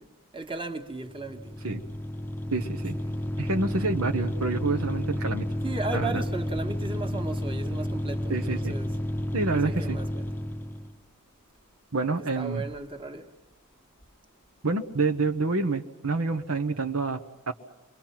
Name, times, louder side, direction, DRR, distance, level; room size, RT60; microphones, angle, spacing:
voice 1, 0.3-1.6 5.6-8.9 9.5-10.3 12.4-13.3, right 3 dB, 25° right, 1.8 m, -35 dB
sound 1, 1.1-11.0, left 1 dB, 10° left, 0.8 m, -31 dB
voice 2, 2.5-2.9 3.4-5.5 5.9-6.2 8.3-8.8 9.3-10.0 11.9-12.6 14.6-17.5, right 3 dB, 65° right, 1.2 m, -28 dB
29.0 x 23.0 x 6.0 m
head